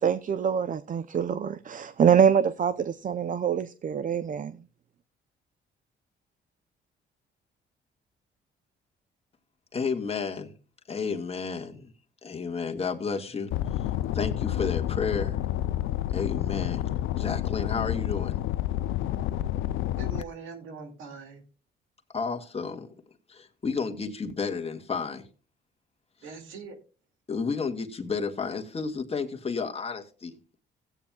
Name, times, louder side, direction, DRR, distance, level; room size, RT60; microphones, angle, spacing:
voice 1, 0.0-4.6, right 8 dB, 40° right, 0.6 m, -25 dB
voice 2, 9.7-10.5 10.9-11.9 12.2-13.8 14.1-15.4 16.1-18.4 22.1-22.9 23.3-25.3 27.3-30.3, left 5 dB, 30° left, 1.7 m, -32 dB
sound 1, 13.5-20.2, left 13 dB, 85° left, 0.5 m, -29 dB
voice 3, 20.0-21.4 26.2-26.8, right 5 dB, 85° right, 2.4 m, -42 dB
16.5 x 9.0 x 2.3 m
cardioid pair, 90°, 20 cm